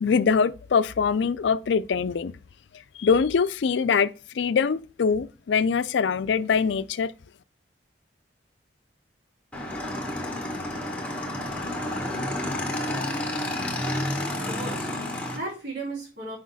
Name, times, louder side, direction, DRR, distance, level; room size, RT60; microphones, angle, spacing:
voice 1, 0.0-2.4 3.0-4.1 4.4-7.1, left 6 dB, 75° left, 0.4 m, -23 dB
Motorcycle / Engine, 9.5-15.4, left 1 dB, 5° left, 1.2 m, -30 dB
voice 2, 14.2-16.4, right 2 dB, 60° right, 3.2 m, -36 dB
6.1 x 5.1 x 4.0 m
head